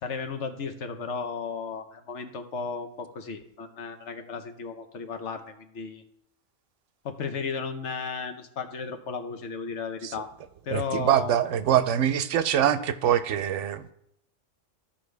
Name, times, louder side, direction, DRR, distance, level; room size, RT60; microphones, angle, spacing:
voice 1, 0.0-6.0 7.0-10.3 10.7-11.5, left 5 dB, 65° left, 7 dB, 1.2 m, -34 dB
voice 2, 10.7-13.9, right 10 dB, 75° right, 13 dB, 0.9 m, -24 dB
14.5 x 5.6 x 3.3 m, 0.76 s
omnidirectional pair, 1.3 m